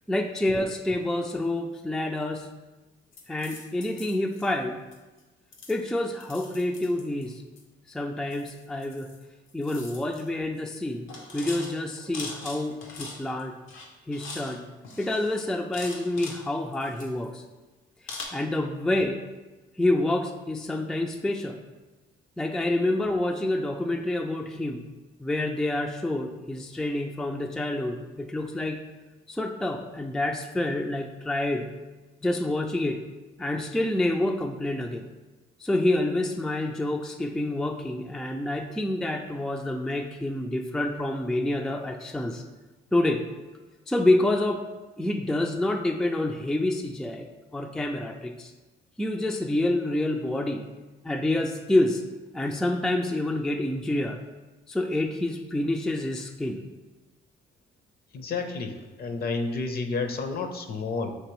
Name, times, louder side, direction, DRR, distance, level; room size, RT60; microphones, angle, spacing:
voice 1, 0.1-2.5 3.3-4.8 5.7-7.4 7.9-9.1 9.5-11.1 11.3-13.6 14.1-14.6 15.0-17.4 18.0-19.2 19.8-21.6 22.4-24.9 25.2-28.8 29.3-31.7 32.2-33.0 33.4-35.0 35.6-42.4 42.9-43.2 43.9-44.6 45.0-47.3 47.5-48.5 49.0-50.6 51.0-52.0 52.3-54.2 54.7-56.6, left 1 dB, ahead, 4 dB, 0.3 m, -27 dB
sound 1, 3.1-4.5 4.9-5.2 5.5-7.6 8.3-9.2 9.5-10.3 10.6-10.8 11.1-13.4 13.7-14.6 14.8-16.4 16.7-17.4 18.1-18.2, left 3 dB, 90° left, 0.8 m, -42 dB
voice 2, 58.1-61.1, left 4 dB, 50° left, 6 dB, 0.6 m, -30 dB
5.9 x 2.9 x 3.0 m, 1.2 s
cardioid pair, 90°, 20 cm